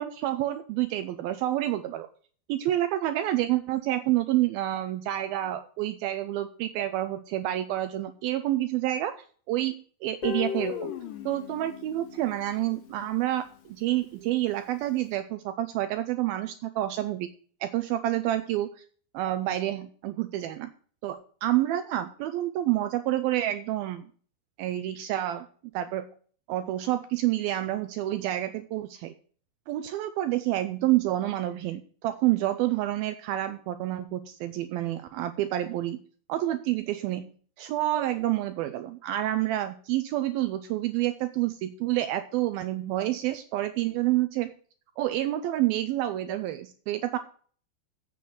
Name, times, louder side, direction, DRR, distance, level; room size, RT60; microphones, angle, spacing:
voice 1, 0.0-2.1 2.5-9.1 9.5-10.9 11.3-17.3 17.6-18.8 19.1-20.7 21.0-24.0 24.6-25.5 25.7-26.1 26.5-29.1 29.7-36.0 36.3-44.5 45.0-47.2, right 14 dB, 80° right, 10 dB, 2.4 m, -28 dB
Guitar, 10.2-13.2, left 9 dB, 65° left, 2.7 m, -36 dB
8.4 x 6.9 x 7.7 m, 0.43 s
omnidirectional pair, 4.6 m